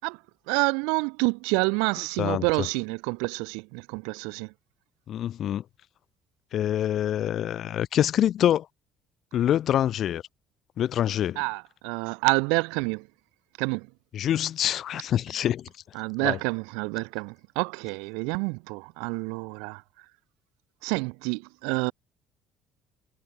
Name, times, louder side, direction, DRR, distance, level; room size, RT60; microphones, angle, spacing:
voice 1, 0.5-4.5 11.4-13.1 13.6-13.9 15.9-19.8 20.8-21.9, right 34 dB, 80° right, 0.5 m, -28 dB
voice 2, 5.1-5.6 6.5-8.7 9.3-10.2 10.8-11.4 14.1-15.7 16.2-16.4, left 11 dB, 60° left, 1.2 m, -25 dB
hypercardioid pair, 60°, 0 cm